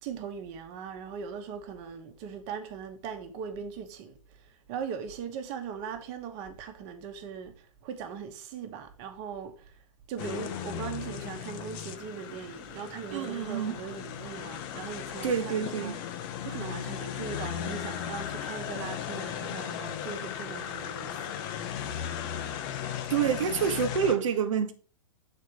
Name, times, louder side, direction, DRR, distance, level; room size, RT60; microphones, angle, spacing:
voice 1, 0.0-9.8 10.1-21.2, right 7 dB, 40° right, 1.2 m, -40 dB
sound 1, 10.2-24.1, left 9 dB, 40° left, 0.7 m, -36 dB
voice 2, 13.1-13.8 15.2-16.0 23.1-24.7, right 7 dB, 70° right, 1.0 m, -27 dB
6.7 x 4.3 x 4.7 m
hypercardioid pair, 140°, 17 cm